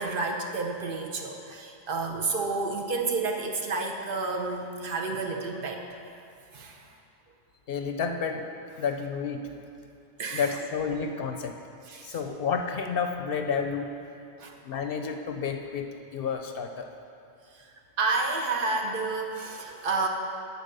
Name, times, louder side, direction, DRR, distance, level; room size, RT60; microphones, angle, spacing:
voice 1, 0.0-5.8 6.5-6.9 10.2-10.6 11.9-12.2 14.4-14.6 17.5-20.1, right 3 dB, 55° right, 2 dB, 0.9 m, -30 dB
voice 2, 7.7-8.4 8.8-9.5 10.3-11.5 12.0-13.9 14.6-16.9, left 6 dB, 65° left, 5 dB, 0.7 m, -30 dB
9.6 x 4.2 x 6.7 m, 2.5 s
omnidirectional pair, 1.1 m